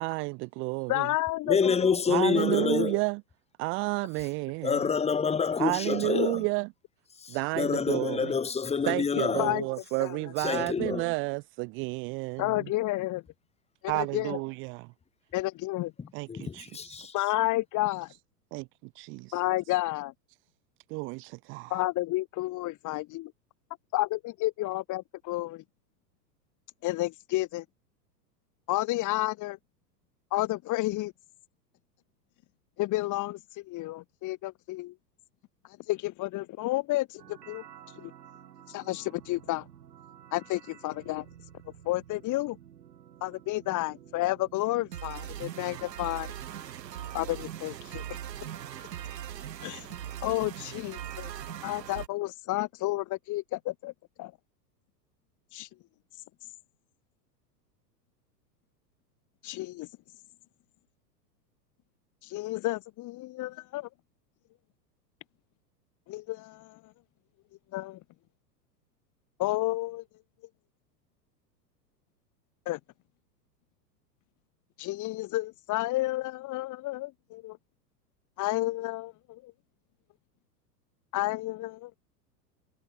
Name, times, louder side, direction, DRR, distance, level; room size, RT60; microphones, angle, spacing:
voice 1, 0.0-1.1 2.1-3.2 3.6-4.8 5.6-6.7 7.3-8.3 8.8-12.7 13.9-14.9 16.1-17.3 18.5-18.7 19.0-19.4 20.9-21.8, right 29 dB, 25° right, 0.4 m, -31 dB
voice 2, 0.9-2.0 6.1-6.3 9.4-9.7 10.0-10.2 12.4-13.2 13.8-14.4 15.3-15.9 17.1-18.1 19.3-20.1 21.7-23.3 23.9-25.6 26.8-27.6 28.7-29.6 30.3-31.1 32.8-34.9 35.9-37.6 38.0-38.1 38.7-39.7 40.3-41.3 41.9-42.6 43.2-46.3 47.1-48.0 49.6-49.9 50.2-51.3 51.6-53.9 54.2-54.3 55.5-55.7 59.4-59.9 62.3-63.9 66.1-66.8 67.7-68.0 69.4-70.0 72.7-72.8 74.8-77.6 78.4-79.5 81.1-81.9, left 18 dB, 35° left, 1.8 m, -31 dB
voice 3, 1.5-3.0 4.6-6.4 7.2-9.5 10.4-11.1 16.3-17.1, left 6 dB, 10° left, 1.4 m, -27 dB
sound 1, 37.2-52.1, right 10 dB, 80° right, 3.3 m, -43 dB
hypercardioid pair, 105°, 50 cm